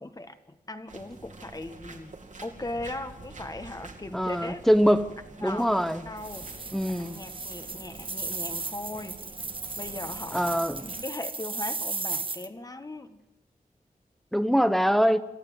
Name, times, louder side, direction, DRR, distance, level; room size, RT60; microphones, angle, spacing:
voice 1, 0.0-2.1 2.4-5.0 5.4-5.7 6.0-6.5 6.9-9.2 9.8-10.4 11.0-13.2, left 2 dB, 25° left, 8 dB, 1.6 m, -38 dB
sound 1, 0.9-11.0, right 3 dB, 60° right, 2.7 m, -47 dB
voice 2, 4.1-5.1 5.4-6.0 6.7-7.2 10.3-10.9 14.3-15.2, equal, ahead, 11 dB, 1.0 m, -23 dB
sound 2, 6.2-12.5, right 3 dB, 35° right, 1.1 m, -36 dB
28.0 x 15.0 x 8.0 m, 0.92 s
wide cardioid pair, 115°, 14 cm